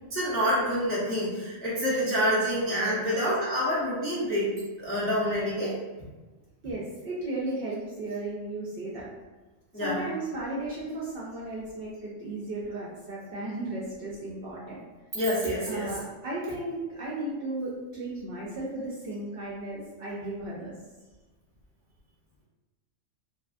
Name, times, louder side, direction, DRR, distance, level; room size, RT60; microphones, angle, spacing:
voice 1, 0.1-4.5 4.8-5.7 9.7-10.0 15.1-15.9, equal, 20° left, -9 dB, 0.3 m, -27 dB
voice 2, 6.6-9.1 9.7-14.8 15.6-20.7, right 2 dB, 60° right, -6 dB, 0.6 m, -35 dB
2.6 x 2.3 x 2.4 m, 1.2 s
omnidirectional pair, 1.3 m